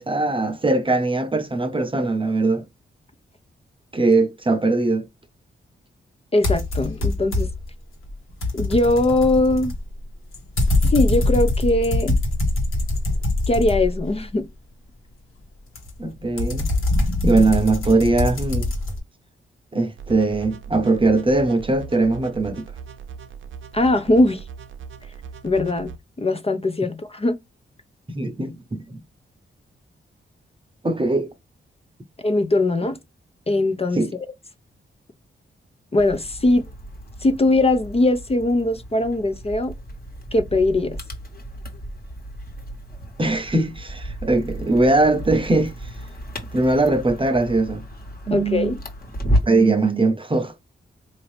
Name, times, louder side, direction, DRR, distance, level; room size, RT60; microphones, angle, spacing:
voice 1, 0.0-2.6 3.9-5.1 16.0-16.7 17.2-18.7 19.7-22.6 28.1-29.0 30.8-31.3 34.0-34.1 43.2-45.7 46.5-47.8 48.3-48.7 49.5-50.5, right 2 dB, 25° right, 0.8 m, -20 dB
voice 2, 6.3-7.5 8.5-9.7 10.8-12.1 13.5-14.5 23.7-24.4 25.4-27.3 32.2-33.0 33.5-34.0 35.9-36.7 37.2-39.7 40.3-41.0 48.3-48.8, left 2 dB, 30° left, 0.6 m, -20 dB
sound 1, 6.4-7.7 8.1-14.3 15.8-19.0, left 2 dB, 80° left, 1.4 m, -23 dB
sound 2, 20.0-26.0, right 6 dB, 70° right, 0.6 m, -39 dB
sound 3, 36.0-49.7, equal, 45° left, 1.4 m, -32 dB
3.8 x 2.7 x 3.3 m
cardioid pair, 60°, 21 cm